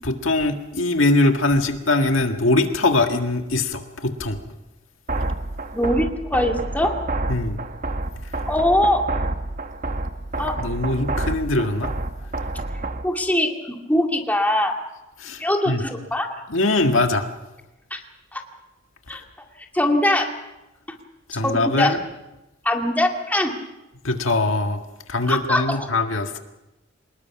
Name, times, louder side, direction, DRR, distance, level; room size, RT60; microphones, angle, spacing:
voice 1, 0.0-4.4 7.3-7.6 10.6-11.9 15.2-15.8 16.5-17.3 21.3-22.0 24.0-24.8 25.1-26.4, left 2 dB, 75° left, 5 dB, 1.8 m, -22 dB
sound 1, 5.1-13.1, right 2 dB, 45° right, 1.2 m, -28 dB
voice 2, 5.7-7.0 8.4-9.0 10.4-10.5 13.0-14.8 15.4-16.3 17.9-18.0 18.3-18.4 19.1-19.2 19.7-20.3 21.4-22.0 22.6-23.5 25.3-25.9, left 1 dB, 10° left, 2 dB, 2.3 m, -22 dB
25.0 x 20.5 x 6.0 m, 0.99 s
head